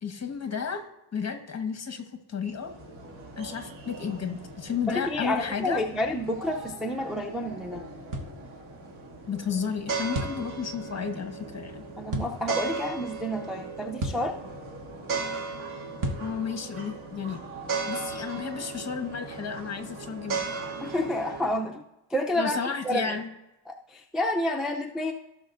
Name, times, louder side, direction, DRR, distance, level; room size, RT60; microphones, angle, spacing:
voice 1, 0.0-2.7 3.4-5.8 9.3-11.8 16.2-17.4 17.9-20.5 22.4-23.3, left 6 dB, 35° left, 6 dB, 1.3 m, -32 dB
sound 1, 2.5-21.5, right 4 dB, 85° right, 2.3 m, -37 dB
voice 2, 4.9-7.8 12.0-14.4 20.8-21.8 22.1-22.6 22.8-23.2 23.7-25.1, left 1 dB, ahead, 0 dB, 0.5 m, -29 dB
sound 2, 8.1-8.4 10.1-10.4 12.1-12.3 14.0-14.3 16.0-16.3, right 1 dB, 40° right, 1.3 m, -31 dB
16.0 x 6.3 x 2.6 m, 0.94 s
cardioid pair, 115°, 46 cm